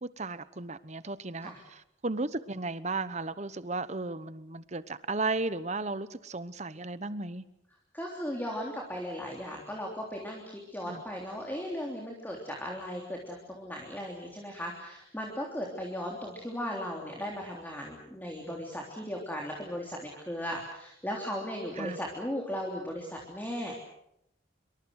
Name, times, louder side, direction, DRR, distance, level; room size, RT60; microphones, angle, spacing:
voice 1, 0.0-7.4 10.8-11.0 21.8-22.0, right 3 dB, 35° right, 14 dB, 1.0 m, -35 dB
voice 2, 7.9-23.7, equal, 10° left, -1 dB, 3.4 m, -37 dB
26.5 x 24.0 x 6.5 m, 0.80 s
head